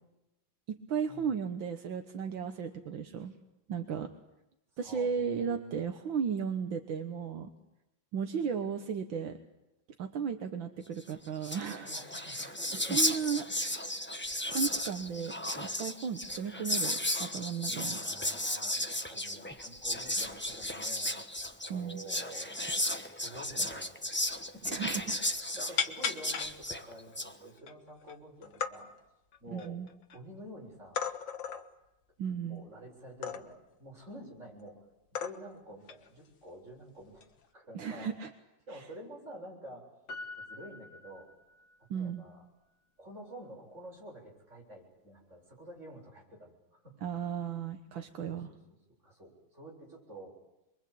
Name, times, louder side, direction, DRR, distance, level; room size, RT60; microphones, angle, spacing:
voice 1, 0.7-3.3 3.7-4.1 4.8-7.5 8.1-9.4 10.0-13.7 14.5-18.0 21.7-22.0 24.7-25.2 29.5-29.9 32.2-32.6 37.7-38.3 41.9-42.2 47.0-48.5, right 7 dB, 75° right, 6 dB, 2.0 m, -35 dB
voice 2, 4.8-5.8 11.8-13.6 17.7-18.8 19.1-21.1 21.6-22.6 23.1-24.1 24.7-24.8 25.6-28.9 29.4-29.8 30.1-31.0 32.4-34.9 35.1-37.3 37.5-38.1 38.7-39.9 40.4-41.3 41.8-42.4 43.0-47.1 48.3-48.6 49.0-50.4, right 1 dB, 35° right, -1 dB, 7.7 m, -49 dB
Whispering, 11.1-11.2 11.4-27.3, left 1 dB, 10° left, 0.9 m, -34 dB
sound 1, 23.9-24.0 24.2-24.4 24.7-25.2 25.8-26.5 27.1-27.2 27.6-28.1 28.4-28.7 29.3-30.2 30.9-31.7 33.2-33.7 34.6-34.7 35.1-35.6 35.9-36.1 37.1-37.5, left 7 dB, 70° left, 2.1 m, -35 dB
Piano, 40.1-41.9 42.2-42.3, left 2 dB, 55° left, 2.8 m, -46 dB
27.5 x 22.5 x 8.6 m, 0.91 s
omnidirectional pair, 2.1 m